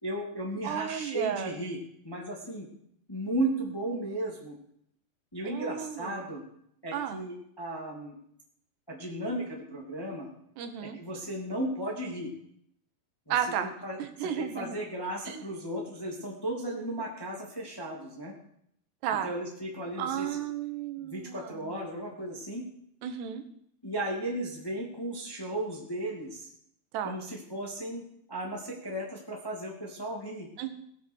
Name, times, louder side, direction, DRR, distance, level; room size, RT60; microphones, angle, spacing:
voice 1, 0.0-1.8 2.0-2.7 3.1-4.5 5.3-6.4 6.8-8.2 8.9-10.3 10.8-12.3 13.2-13.4 13.6-18.3 19.2-20.4 21.0-22.6 23.8-26.5 27.0-30.5, right 1 dB, 10° left, -1 dB, 1.6 m, -35 dB
voice 2, 0.6-1.6 5.4-6.3 6.9-7.2 10.6-11.0 13.3-13.7 14.0-14.8 15.3-15.4 19.0-19.3 20.0-21.7 23.0-23.4 26.9-27.2 30.6-30.7, right 9 dB, 85° right, 8 dB, 3.4 m, -33 dB
18.0 x 8.3 x 6.5 m, 0.71 s
omnidirectional pair, 4.8 m